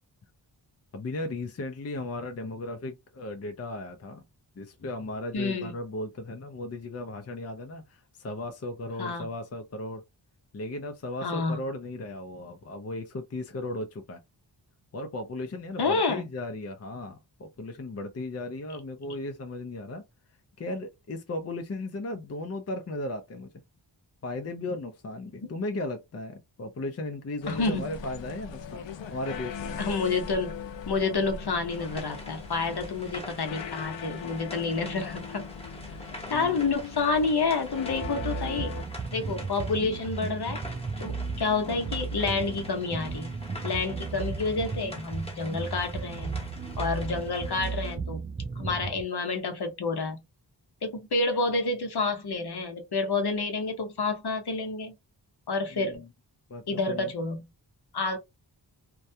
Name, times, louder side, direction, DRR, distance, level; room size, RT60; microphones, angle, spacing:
voice 1, 0.9-4.2 4.6-10.0 10.5-14.2 14.9-20.0 20.6-23.5 24.2-29.9 36.3-36.6 39.2-39.3 55.7-56.1 56.5-57.1, left 2 dB, 35° left, 0.6 m, -36 dB
voice 2, 5.3-5.7 9.0-9.3 11.2-11.6 15.8-16.3 27.5-27.8 29.8-30.5 30.9-35.5 36.3-38.7 39.1-40.6 41.0-43.4 43.6-46.4 46.8-48.2 48.6-50.2 50.8-54.9 55.5-56.0 56.7-57.5 57.9-58.2, left 3 dB, 60° left, 0.9 m, -29 dB
sound 1, 27.4-38.8, left 6 dB, 75° left, 0.5 m, -40 dB
sound 2, 31.7-48.0, left 1 dB, 15° left, 1.1 m, -46 dB
sound 3, 37.9-49.0, right 4 dB, 20° right, 0.5 m, -35 dB
2.3 x 2.2 x 2.6 m
cardioid pair, 50°, 44 cm